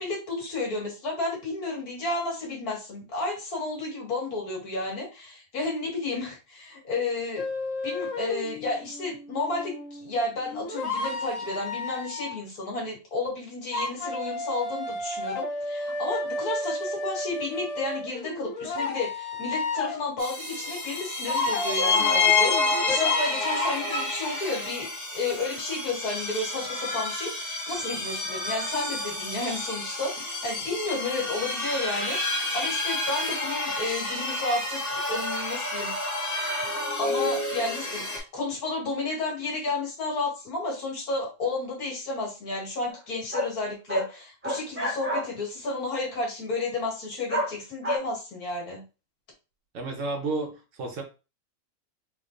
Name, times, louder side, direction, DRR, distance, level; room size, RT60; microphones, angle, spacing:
voice 1, 0.0-7.4 7.8-35.9 37.0-48.8, left 3 dB, 85° left, -2 dB, 2.0 m, -32 dB
sound 1, 7.4-12.4 13.7-20.2 21.3-24.0, left 2 dB, 60° left, 0.4 m, -32 dB
sound 2, 20.2-38.2, left 3 dB, 15° left, 1.1 m, -29 dB
sound 3, 42.9-43.0 43.3-43.5 43.9-44.1 44.4-45.3 47.3-47.5 47.8-48.0, equal, 15° right, 0.4 m, -28 dB
voice 2, 49.7-51.0, right 3 dB, 60° right, 3 dB, 1.2 m, -31 dB
3.5 x 3.3 x 2.5 m, 0.30 s
omnidirectional pair, 1.5 m